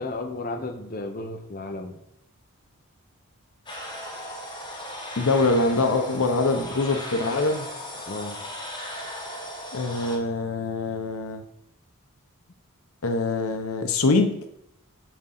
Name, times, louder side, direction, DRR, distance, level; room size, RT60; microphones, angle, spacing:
voice 1, 0.0-2.0 8.1-8.4, left 2 dB, 40° left, 4 dB, 0.7 m, -33 dB
sound 1, 3.7-10.2, left 1 dB, 20° left, 1.2 m, -37 dB
voice 2, 5.2-7.7 9.7-11.4 13.0-14.3, left 3 dB, 75° left, 7 dB, 0.8 m, -24 dB
9.2 x 3.7 x 5.8 m, 0.78 s
head